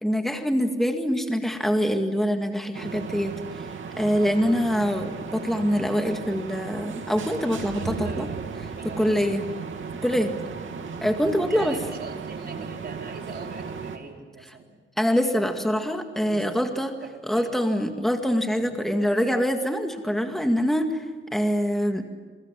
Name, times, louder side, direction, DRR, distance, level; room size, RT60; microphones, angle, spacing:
voice 1, 0.0-3.7 4.0-8.3 9.0-9.4 10.0-10.3 11.0-11.8 15.0-16.9 17.3-21.1 21.3-22.1, equal, ahead, 5 dB, 1.9 m, -24 dB
Ventilation walla elevator residential hallway, 2.7-14.0, right 5 dB, 70° right, 2.8 m, -35 dB
voice 2, 7.7-8.4 8.8-9.3 10.0-10.3 11.5-14.7 16.3-16.6 17.3-17.5 18.6-18.7, right 4 dB, 50° right, 1 dB, 4.6 m, -41 dB
27.5 x 23.5 x 7.4 m, 1.3 s
wide cardioid pair, 145°, 21 cm